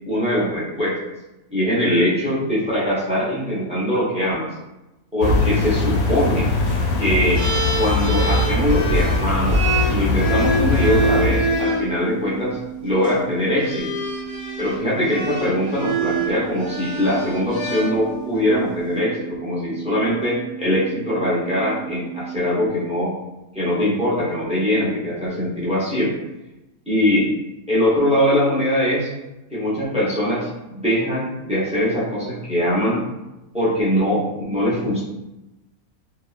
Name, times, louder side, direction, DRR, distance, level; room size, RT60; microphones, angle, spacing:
voice 1, 0.1-1.0 1.5-4.5 5.1-6.5 7.0-7.4 7.8-13.9 14.6-23.1 23.5-26.1 26.9-27.3 27.7-29.1 29.5-33.0 33.5-35.0, left 1 dB, 10° right, -8 dB, 0.5 m, -22 dB
sound 1, 5.2-11.6, left 2 dB, 80° left, 1.0 m, -21 dB
sound 2, 7.3-11.9 12.9-13.1 13.6-18.4, right 1 dB, 30° right, 0.8 m, -26 dB
sound 3, 10.5-22.7, right 11 dB, 45° left, 0.7 m, -35 dB
2.8 x 2.2 x 2.3 m, 0.97 s
omnidirectional pair, 1.5 m